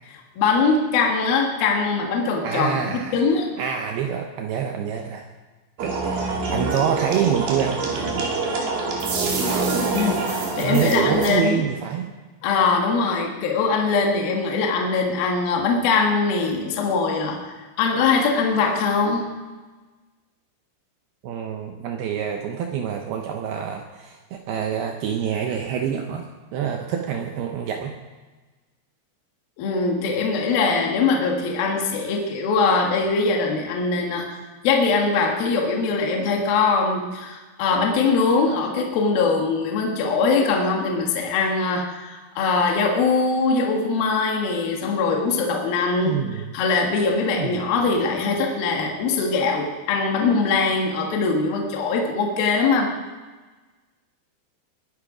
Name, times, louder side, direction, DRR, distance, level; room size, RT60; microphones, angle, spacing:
voice 1, 0.1-3.5 9.9-11.6 12.4-19.4 29.6-46.2 46.5-53.0, left 4 dB, 60° left, 1 dB, 3.0 m, -22 dB
voice 2, 2.4-3.2 3.6-5.3 5.8-8.2 10.6-12.1 21.2-27.9 46.0-46.5 47.4-47.6, right 8 dB, 75° right, 3 dB, 2.4 m, -27 dB
sound 1, 5.8-11.3, right 3 dB, 55° right, 3.7 m, -25 dB
21.5 x 10.5 x 5.0 m, 1.3 s
omnidirectional pair, 5.5 m